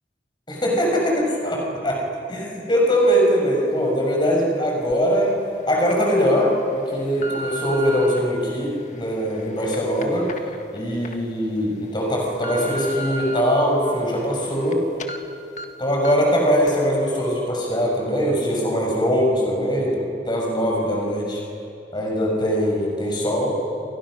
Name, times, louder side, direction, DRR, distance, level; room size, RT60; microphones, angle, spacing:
voice 1, 0.5-2.0 2.3-5.3 5.7-6.5 6.9-10.3 10.7-14.8 15.8-21.4 21.9-23.6, equal, 25° left, -1 dB, 6.2 m, -21 dB
sound 1, 4.9-5.0 5.6-5.9 6.6-8.2 8.8-11.1 11.6-11.7 12.1-13.4 13.8-14.7 15.0-15.2 15.6-15.7 16.0-16.3 16.7-16.8, right 1 dB, 45° left, 1.7 m, -35 dB
30.0 x 28.5 x 6.5 m, 2.6 s
head